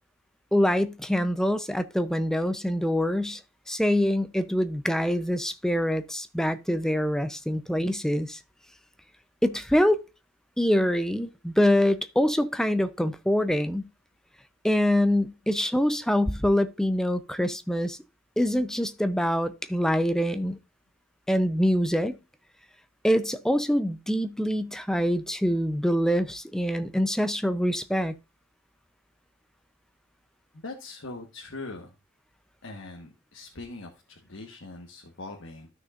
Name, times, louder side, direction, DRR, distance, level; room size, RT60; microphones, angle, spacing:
voice 1, 0.5-3.4 3.7-8.4 9.4-10.0 10.6-13.8 14.6-18.0 18.4-20.6 21.3-22.2 23.0-28.1, equal, 5° left, 0.5 m, -25 dB
voice 2, 30.6-31.9 32.6-35.7, left 2 dB, 75° left, 1.3 m, -41 dB
13.0 x 6.3 x 2.4 m
head